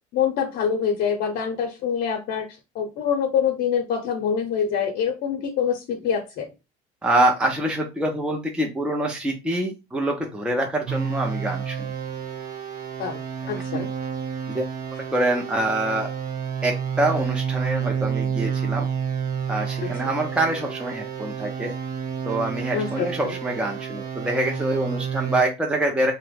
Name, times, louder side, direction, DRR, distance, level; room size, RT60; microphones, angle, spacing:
voice 1, 0.1-2.5 2.7-6.5 13.0-13.2 13.5-13.9 19.8-19.9 22.7-23.3, left 7 dB, 70° left, 1 dB, 0.7 m, -25 dB
voice 2, 7.0-11.9 13.7-13.8 14.5-14.7 15.1-16.1 16.6-18.9 19.5-21.7 22.3-26.1, right 1 dB, 5° right, 1 dB, 0.6 m, -25 dB
sound 1, 10.9-25.4, right 7 dB, 55° right, 1.1 m, -29 dB
2.9 x 2.1 x 3.3 m, 0.26 s
supercardioid pair, 95°, 18 cm